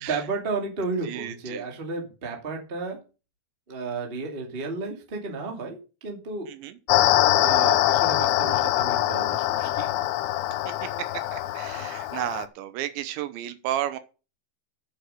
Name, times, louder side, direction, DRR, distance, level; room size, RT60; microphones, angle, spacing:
voice 1, 0.1-3.0 3.7-6.5 7.3-9.9 11.6-11.9, right 3 dB, 25° right, 2 dB, 1.3 m, -33 dB
voice 2, 1.1-1.6 6.5-6.7 10.8-10.9 11.3-14.0, right 12 dB, 85° right, 12 dB, 3.1 m, -32 dB
sound 1, 6.9-12.5, left 14 dB, 90° left, 3.2 m, -23 dB
8.1 x 7.9 x 6.5 m, 0.33 s
omnidirectional pair, 5.3 m